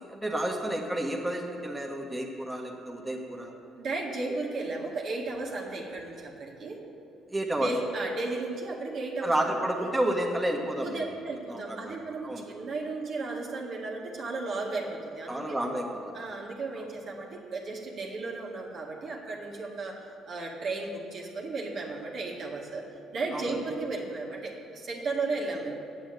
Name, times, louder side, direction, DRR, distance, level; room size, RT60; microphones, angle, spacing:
voice 1, 0.0-3.5 7.3-7.7 9.2-11.1 11.5-12.4 15.3-16.2 23.3-23.5, right 1 dB, 10° right, -1 dB, 1.5 m, -31 dB
voice 2, 3.8-6.8 7.6-9.9 10.8-15.4 16.1-20.0 20.3-22.8 23.1-25.8, right 3 dB, 60° right, -1 dB, 1.9 m, -34 dB
8.7 x 7.1 x 8.1 m, 2.8 s
supercardioid pair, 70°, 0 cm